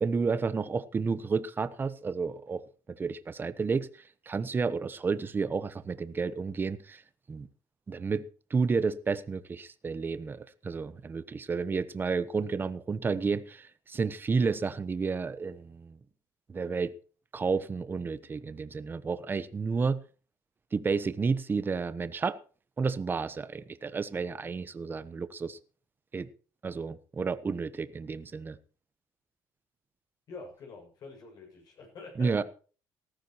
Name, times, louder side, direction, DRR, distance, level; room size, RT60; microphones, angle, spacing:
voice 1, 0.0-2.6 2.9-3.9 4.3-7.0 7.3-7.5 7.9-16.0 16.5-16.9 17.3-20.0 20.7-22.4 22.8-25.6 26.1-26.3 26.6-28.6 32.2-32.4, right 5 dB, 25° right, 1.0 m, -31 dB
voice 2, 30.3-32.4, left 3 dB, 55° left, 6.9 m, -46 dB
18.5 x 14.0 x 3.1 m
cardioid pair, 120°, 8 cm